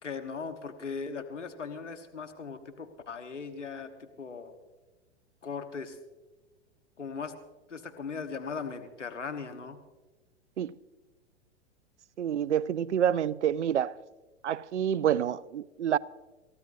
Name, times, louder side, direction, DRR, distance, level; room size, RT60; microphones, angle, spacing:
voice 1, 0.0-4.5 5.4-6.0 7.0-7.3 7.7-9.8, left 5 dB, 85° left, 1.3 m, -38 dB
voice 2, 12.2-14.0 14.4-16.0, right 9 dB, 80° right, 0.6 m, -28 dB
28.0 x 15.5 x 2.7 m
figure-of-eight pair, 100°, 35 cm